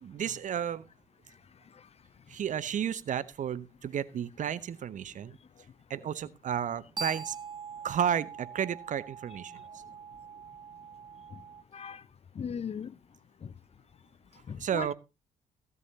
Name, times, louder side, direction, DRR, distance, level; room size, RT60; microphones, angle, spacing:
voice 1, 0.0-0.9 2.3-5.4 5.9-7.4 7.8-9.6 14.6-14.9, right 9 dB, 50° right, 0.8 m, -32 dB
sound 1, 6.7-11.6, right 5 dB, 25° right, 0.9 m, -43 dB
voice 2, 11.7-12.0 12.3-13.0 13.4-13.5 14.5-14.9, left 7 dB, 40° left, 0.7 m, -38 dB
16.0 x 11.0 x 2.8 m
figure-of-eight pair, 40°, 17 cm